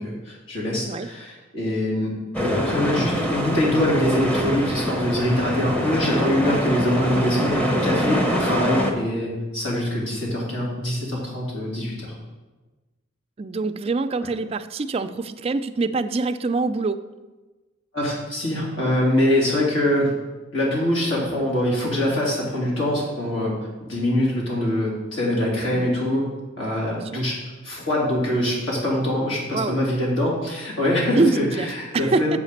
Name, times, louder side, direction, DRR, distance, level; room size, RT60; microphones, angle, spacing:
voice 1, 0.0-2.1 2.5-12.1 17.9-20.1 20.5-23.5 23.8-26.2 26.6-27.4 27.6-32.4, left 1 dB, 75° left, -5 dB, 2.8 m, -24 dB
sound 1, 2.3-8.9, equal, 5° left, 0.8 m, -24 dB
voice 2, 13.4-17.0 25.7-25.9 26.9-27.2 29.5-29.8 31.1-32.4, right 3 dB, 30° right, 8 dB, 0.3 m, -25 dB
7.2 x 5.0 x 6.5 m, 1.2 s
head